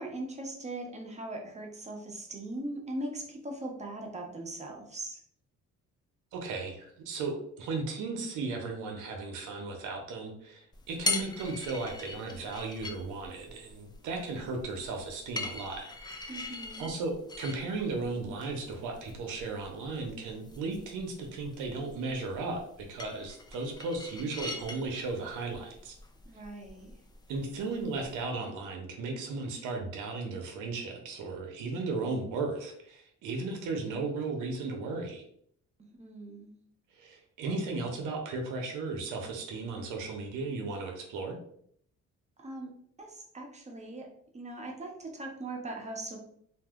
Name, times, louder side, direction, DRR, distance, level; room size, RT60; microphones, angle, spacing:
voice 1, 0.0-5.2 16.3-16.9 26.3-26.9 36.0-36.5 42.4-42.7 43.0-44.1 44.3-46.2, right 2 dB, 20° right, 1 dB, 0.8 m, -40 dB
voice 2, 6.3-15.9 16.8-26.0 27.3-35.2 36.9-41.4, right 3 dB, 90° right, 2 dB, 0.7 m, -35 dB
sound 1, 10.7-28.2, left 3 dB, 15° left, 0.4 m, -42 dB
2.6 x 2.0 x 3.5 m, 0.65 s
cardioid pair, 90°, 30 cm